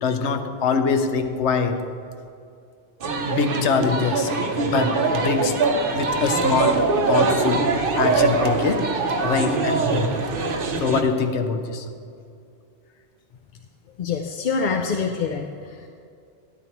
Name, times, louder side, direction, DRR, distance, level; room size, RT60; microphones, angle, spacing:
voice 1, 0.0-1.9 3.3-4.3 4.6-5.6 5.9-8.9 9.2-10.2 10.8-11.9, left 5 dB, 90° left, 7 dB, 1.0 m, -24 dB
sound 1, 3.0-11.0, right 4 dB, 55° right, 0.9 m, -22 dB
voice 2, 14.0-15.9, left 5 dB, 55° left, 4 dB, 0.6 m, -26 dB
12.5 x 10.5 x 3.0 m, 2.5 s
omnidirectional pair, 1.1 m